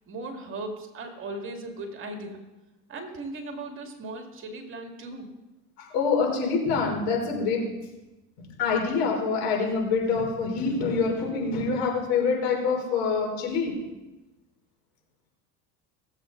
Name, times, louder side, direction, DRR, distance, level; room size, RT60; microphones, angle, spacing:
voice 1, 0.1-2.4 2.9-5.3, right 2 dB, 40° right, 3 dB, 2.2 m, -37 dB
voice 2, 5.8-7.7 8.4-13.7, left 4 dB, 75° left, 0 dB, 3.8 m, -26 dB
18.5 x 7.9 x 3.9 m, 1.0 s
supercardioid pair, 100°, 33 cm